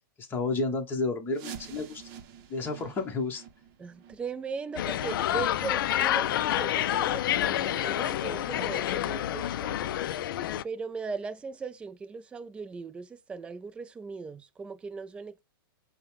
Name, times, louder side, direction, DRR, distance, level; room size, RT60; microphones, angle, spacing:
voice 1, 0.2-2.1 2.5-3.4, left 3 dB, 15° left, 1.0 m, -31 dB
sound 1, 1.3-6.9 7.2-7.4 7.9-8.0 8.6-8.7 9.2-9.3, right 8 dB, 40° right, 0.8 m, -49 dB
voice 2, 3.8-10.3 10.6-15.4, right 5 dB, 10° right, 0.3 m, -39 dB
sound 2, 4.8-10.6, left 12 dB, 65° left, 0.4 m, -28 dB
5.4 x 2.2 x 3.3 m
hypercardioid pair, 135°, 12 cm